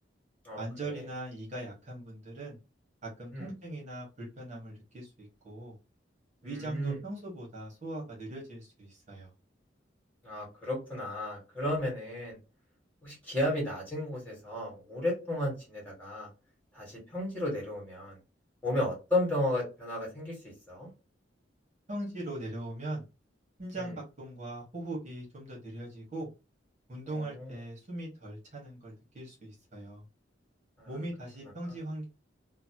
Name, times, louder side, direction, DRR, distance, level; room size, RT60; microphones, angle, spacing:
voice 1, 0.6-2.6 3.0-5.8 6.4-9.3 21.9-23.0 23.6-26.3 26.9-30.0 30.9-32.0, right 1 dB, 40° right, 1.3 m, -40 dB
voice 2, 6.4-7.0 10.2-12.4 13.0-16.3 16.7-18.2 18.6-20.9 23.8-23.9 27.1-27.5 30.8-30.9, left 1 dB, 10° left, 1.7 m, -33 dB
2.9 x 2.2 x 2.9 m
head